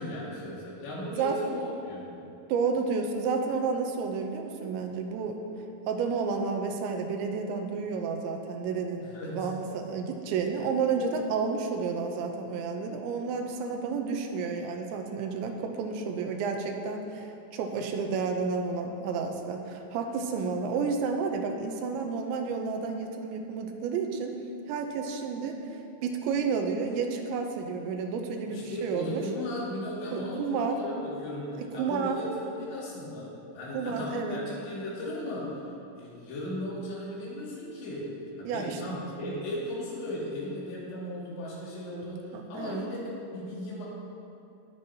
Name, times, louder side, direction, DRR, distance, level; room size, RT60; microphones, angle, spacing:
voice 1, 0.0-2.1 9.0-9.5 28.5-33.3 33.5-35.5 36.0-38.1 38.4-43.8, left 1 dB, 75° left, -7 dB, 4.6 m, -36 dB
voice 2, 2.5-5.4 5.9-24.3 24.7-25.6 26.0-29.2 30.1-30.8 31.6-32.2 33.7-34.4 38.4-38.8 42.3-42.9, right 5 dB, 90° right, 4 dB, 3.1 m, -31 dB
19.5 x 8.0 x 2.9 m, 2.8 s
omnidirectional pair, 5.2 m